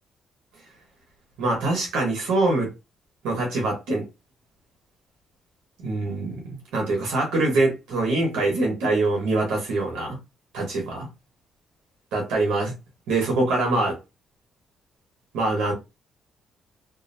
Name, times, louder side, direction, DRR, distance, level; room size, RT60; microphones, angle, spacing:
voice 1, 1.4-2.7 3.2-4.1 5.8-6.4 6.7-10.2 10.5-11.1 12.1-12.7 13.1-14.0 15.3-15.7, right 2 dB, 90° right, 0.9 m, -24 dB
2.5 x 2.0 x 2.6 m
cardioid pair, 90°, 0 cm